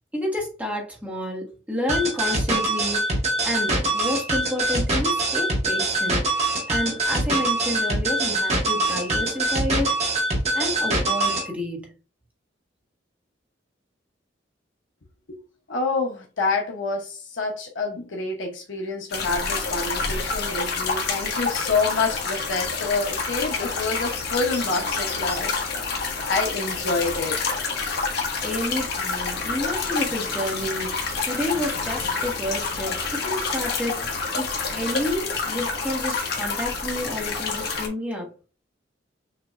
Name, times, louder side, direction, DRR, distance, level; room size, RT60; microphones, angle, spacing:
voice 1, 0.1-3.0 3.4-10.0 10.5-11.9 28.4-38.3, left 1 dB, 10° right, 1.6 m, -30 dB
sound 1, 1.9-11.5, right 2 dB, 35° right, 1.4 m, -24 dB
voice 2, 15.7-25.7 26.2-27.4, left 3 dB, 80° left, 0.9 m, -27 dB
sound 2, 19.1-37.9, left 4 dB, 60° left, 1.3 m, -28 dB
6.4 x 3.0 x 2.5 m
head